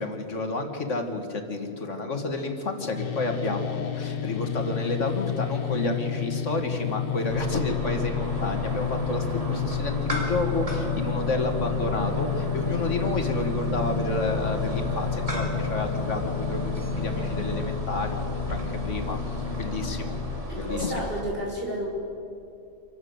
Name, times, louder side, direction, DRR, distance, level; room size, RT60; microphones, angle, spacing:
voice 1, 0.0-20.1 20.6-21.1, left 2 dB, 85° left, 5 dB, 2.2 m, -30 dB
sound 1, 3.0-20.4, left 11 dB, 55° left, 1.1 m, -32 dB
Singing, 3.1-20.2, left 2 dB, 25° left, 1.5 m, -35 dB
sound 2, 7.3-21.2, equal, 30° right, 2.3 m, -34 dB
voice 2, 20.5-21.9, right 1 dB, 50° right, -4 dB, 6.4 m, -31 dB
26.5 x 12.0 x 8.0 m, 2.6 s
omnidirectional pair, 1.2 m